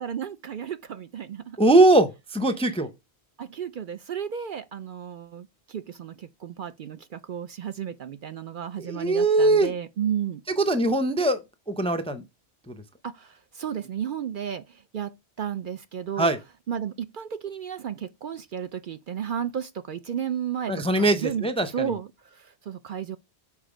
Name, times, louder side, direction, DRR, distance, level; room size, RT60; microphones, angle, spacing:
voice 1, 0.0-1.6 3.4-10.4 13.0-15.1 15.4-16.3 16.7-23.2, right 8 dB, 60° right, 0.7 m, -33 dB
voice 2, 1.6-2.9 8.8-9.7 10.6-11.4 11.7-12.2 12.7-12.8 16.2-16.4 20.7-21.9, right 2 dB, 5° left, 0.5 m, -21 dB
7.2 x 4.3 x 5.0 m
omnidirectional pair, 1.1 m